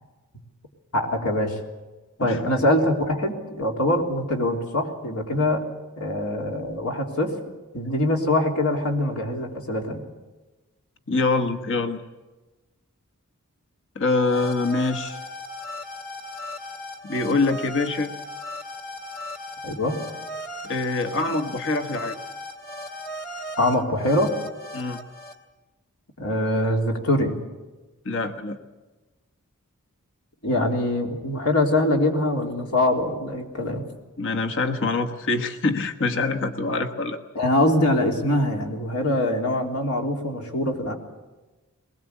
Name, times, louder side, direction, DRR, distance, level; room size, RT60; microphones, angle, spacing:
voice 1, 0.9-1.6 2.2-5.6 6.0-7.3 7.7-10.0 19.6-20.0 23.6-24.3 26.2-27.4 30.4-33.8 37.4-40.9, left 1 dB, 80° left, 1 dB, 3.5 m, -23 dB
voice 2, 11.1-12.0 13.9-15.2 17.0-18.1 20.6-22.2 24.7-25.0 28.0-28.6 34.2-37.2, left 3 dB, 60° left, 7 dB, 1.4 m, -25 dB
sound 1, 14.2-25.3, left 1 dB, 40° left, 2.4 m, -37 dB
21.5 x 20.5 x 8.3 m, 1.2 s
head